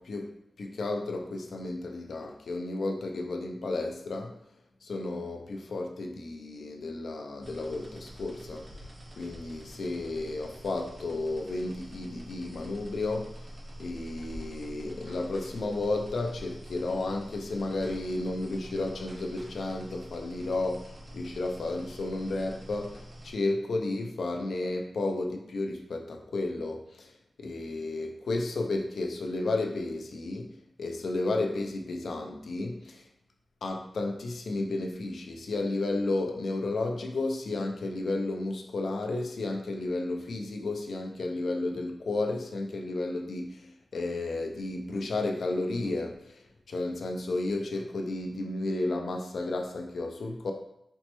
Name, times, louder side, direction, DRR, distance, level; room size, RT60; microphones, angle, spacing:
voice 1, 0.0-4.4 4.8-8.9 9.2-13.5 13.8-33.1 33.6-50.5, left 2 dB, 70° left, 3 dB, 0.4 m, -33 dB
sound 1, 7.4-23.3, equal, 40° right, 0.5 m, -46 dB
4.2 x 2.1 x 2.9 m, 0.78 s
wide cardioid pair, 150°, 0 cm